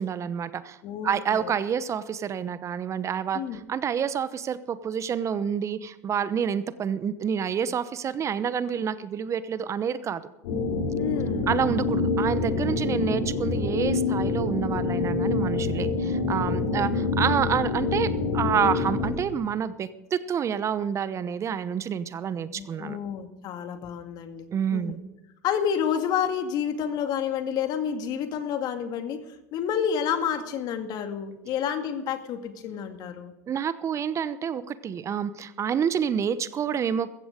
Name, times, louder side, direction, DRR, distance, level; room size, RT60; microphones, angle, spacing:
voice 1, 0.0-0.8 1.0-3.4 3.7-10.2 11.5-23.0 24.5-25.0 33.5-37.1, right 8 dB, 35° right, 14 dB, 0.9 m, -28 dB
voice 2, 0.8-1.5 3.3-3.6 11.0-11.5 12.9-13.1 16.7-17.1 22.5-25.0 25.4-29.2 29.5-33.3, left 8 dB, 50° left, 7 dB, 2.1 m, -30 dB
sound 1, 10.4-19.1, left 3 dB, 75° left, 4.3 m, -26 dB
15.0 x 14.5 x 5.1 m, 0.94 s
hypercardioid pair, 90°, 9 cm